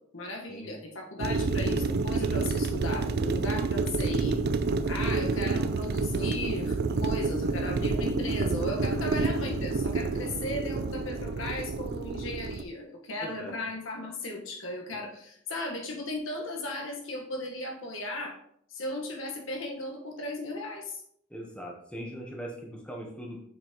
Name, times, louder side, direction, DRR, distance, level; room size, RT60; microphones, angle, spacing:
voice 1, 0.1-4.4 4.9-18.4 18.7-21.0, left 2 dB, 85° left, 0 dB, 1.5 m, -36 dB
sound 1, 1.2-12.6, right 3 dB, 55° right, 0.4 m, -29 dB
voice 2, 2.2-2.5 13.2-13.6 21.3-23.4, equal, 5° left, -1 dB, 1.2 m, -41 dB
7.1 x 5.8 x 3.1 m, 0.67 s
head